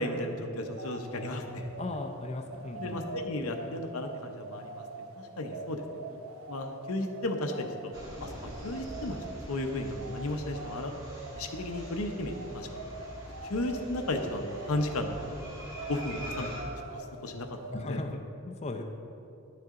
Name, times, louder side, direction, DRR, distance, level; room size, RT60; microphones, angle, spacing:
voice 1, 0.0-1.6 2.8-4.9 5.2-6.2 6.5-7.9 8.2-8.3 8.6-9.2 9.5-10.9 11.4-12.8 13.5-15.2 15.9-17.5 17.9-18.0, left 1 dB, 90° left, 5 dB, 0.8 m, -34 dB
sound 1, 0.6-17.9, right 3 dB, 75° right, 0.6 m, -44 dB
voice 2, 1.8-3.1 17.7-18.8, left 2 dB, 30° left, 4 dB, 0.5 m, -37 dB
sound 2, 7.9-16.6, equal, 15° right, 1.6 m, -44 dB
10.5 x 6.6 x 3.7 m, 2.7 s
head